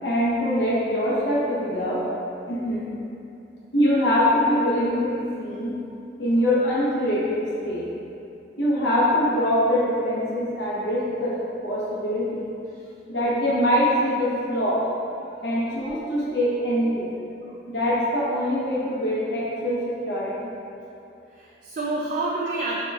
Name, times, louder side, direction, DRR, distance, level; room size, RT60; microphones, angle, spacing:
voice 1, 0.0-2.0 2.5-2.9 3.7-5.7 6.2-7.8 8.6-11.4 11.6-12.5 13.1-14.8 15.4-17.1 17.7-20.3, equal, 75° left, -7 dB, 0.9 m, -23 dB
voice 2, 21.3-22.7, right 2 dB, 50° right, -5 dB, 0.4 m, -29 dB
5.4 x 3.0 x 2.3 m, 2.8 s
head